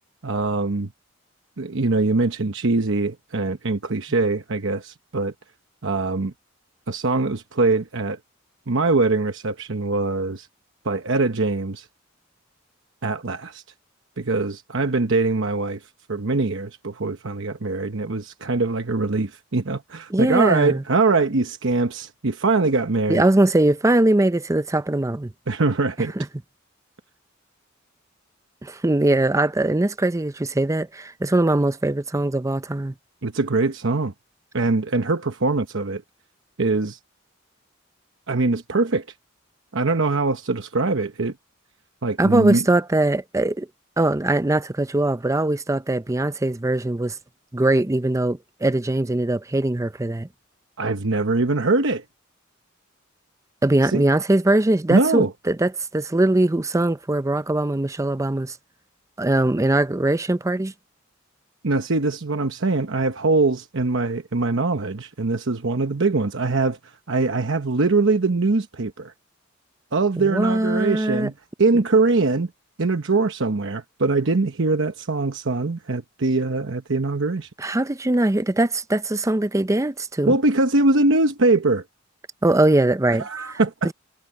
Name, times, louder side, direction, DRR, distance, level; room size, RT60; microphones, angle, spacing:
voice 1, 0.2-0.9 1.6-5.3 5.8-6.3 6.9-8.2 8.7-10.5 10.8-11.9 13.0-13.6 14.2-15.8 16.1-23.2 25.5-26.1 33.2-34.1 34.5-36.0 36.6-37.0 38.3-39.0 39.7-41.3 42.0-42.6 50.8-52.0 53.9-54.0 54.9-55.3 61.6-69.1 69.9-71.3 71.6-72.5 72.8-77.5 80.3-81.8 83.2-83.9, right 3 dB, 65° right, 1.0 m, -22 dB
voice 2, 20.1-20.8 23.1-25.3 26.2-26.3 28.6-32.9 42.2-43.7 44.0-47.2 47.5-50.3 53.6-58.6 59.2-60.7 70.2-71.3 77.6-80.3 82.4-83.6 83.8-83.9, right 1 dB, 15° right, 0.6 m, -21 dB
head